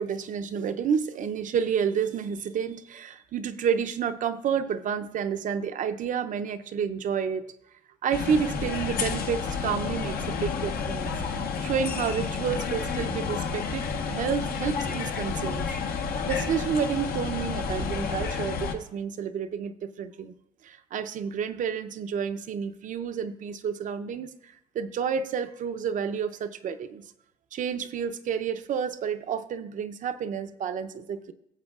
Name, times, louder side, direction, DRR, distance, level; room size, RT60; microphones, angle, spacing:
voice 1, 0.0-7.4 8.0-11.1 11.6-15.7 16.3-20.3 20.6-27.0 27.5-31.3, right 7 dB, 50° right, 10 dB, 0.7 m, -30 dB
sound 1, 8.1-18.7, left 5 dB, 65° left, 1.1 m, -30 dB
19.0 x 7.7 x 2.4 m, 0.77 s
cardioid pair, 110°, 17 cm